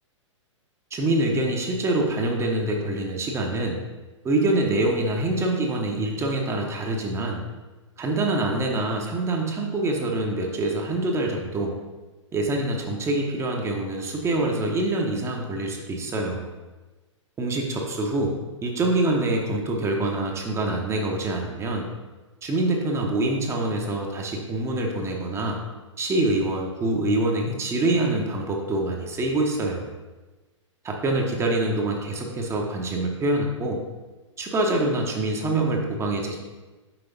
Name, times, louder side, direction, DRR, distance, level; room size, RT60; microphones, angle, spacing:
voice 1, 0.9-3.8 4.2-7.4 8.0-11.8 12.3-16.5 17.4-18.3 18.6-21.9 22.4-25.6 26.0-29.9 30.8-33.8 34.4-36.4, right 2 dB, 15° right, 0 dB, 0.8 m, -25 dB
6.0 x 4.9 x 3.9 m, 1.2 s
hypercardioid pair, 115°, 16 cm